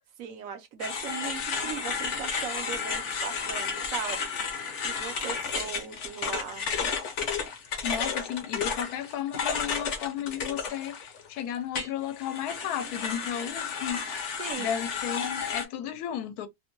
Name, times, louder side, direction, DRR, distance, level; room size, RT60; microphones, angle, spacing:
voice 1, 0.2-4.3 4.8-6.8 14.4-14.8, right 7 dB, 70° right, 1.0 m, -38 dB
sound 1, 0.8-11.3 11.7-15.6, left 5 dB, 60° left, 0.9 m, -32 dB
voice 2, 7.8-16.5, left 9 dB, 80° left, 1.1 m, -34 dB
2.7 x 2.1 x 2.9 m
omnidirectional pair, 1.6 m